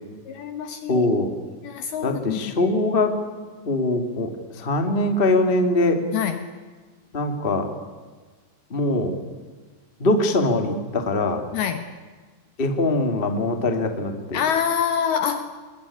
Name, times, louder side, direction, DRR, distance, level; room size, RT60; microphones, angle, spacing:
voice 1, 0.3-1.1 1.6-2.7 6.1-6.5 11.5-11.9 14.3-15.4, left 8 dB, 70° left, 9 dB, 2.5 m, -26 dB
voice 2, 0.9-1.3 2.0-3.1 3.6-6.0 7.1-7.7 8.7-9.2 10.0-11.4 12.6-14.4, left 2 dB, 30° left, 5 dB, 0.9 m, -22 dB
26.5 x 21.5 x 10.0 m, 1.4 s
omnidirectional pair, 5.8 m